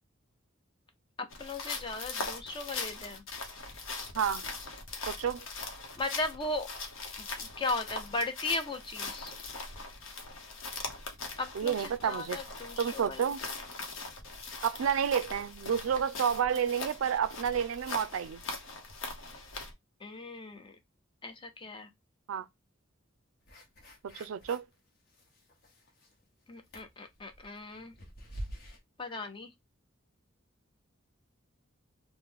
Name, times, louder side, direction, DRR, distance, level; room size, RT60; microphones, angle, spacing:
sound 1, 1.3-19.7, left 3 dB, 80° left, 0.8 m, -41 dB
voice 1, 1.4-3.2 6.0-6.7 7.2-9.3 11.4-13.3 20.0-20.8 21.2-21.9 26.5-27.9 29.0-29.5, left 2 dB, 25° left, 0.6 m, -37 dB
voice 2, 5.1-5.5 11.6-12.4 12.8-13.4 14.6-18.4 22.3-22.4 24.1-24.6, right 8 dB, 85° right, 0.3 m, -30 dB
sound 2, 23.5-24.7 25.1-26.2 26.6-28.8, equal, 55° left, 1.0 m, -46 dB
2.9 x 2.1 x 3.5 m
head